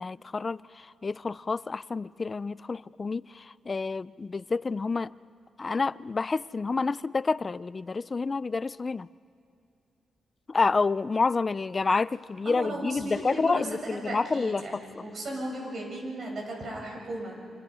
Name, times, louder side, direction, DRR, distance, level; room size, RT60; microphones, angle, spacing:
voice 1, 0.0-5.1 5.6-9.1 10.5-14.8, left 4 dB, 35° left, 18 dB, 0.5 m, -29 dB
voice 2, 12.4-17.4, right 1 dB, 55° right, 0 dB, 6.6 m, -36 dB
26.5 x 26.0 x 5.7 m, 2.4 s
cardioid pair, 75°, 0 cm